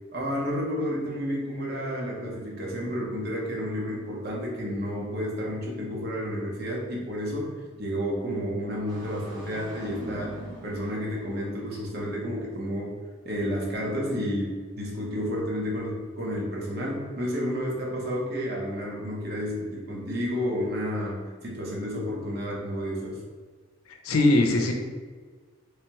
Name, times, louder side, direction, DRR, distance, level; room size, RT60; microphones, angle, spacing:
voice 1, 0.1-7.5 7.8-10.4 10.6-12.9 13.2-23.2, equal, 50° right, -3 dB, 0.9 m, -31 dB
Engine starting, 8.9-11.9, right 1 dB, 20° right, 0.9 m, -43 dB
voice 2, 23.9-24.7, left 2 dB, 85° left, 4 dB, 0.5 m, -21 dB
3.4 x 3.3 x 3.0 m, 1.5 s
head